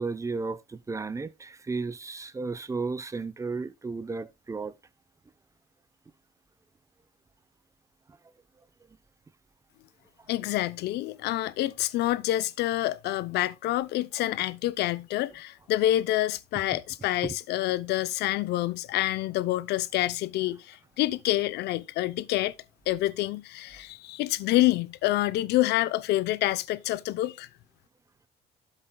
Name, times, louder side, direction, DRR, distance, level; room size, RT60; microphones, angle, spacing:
voice 1, 0.0-4.7 17.2-17.3, right 4 dB, 20° right, 0.7 m, -33 dB
voice 2, 10.3-22.5 22.9-27.5, left 15 dB, 80° left, 0.7 m, -27 dB
12.5 x 7.5 x 2.3 m
cardioid pair, 110°, 17 cm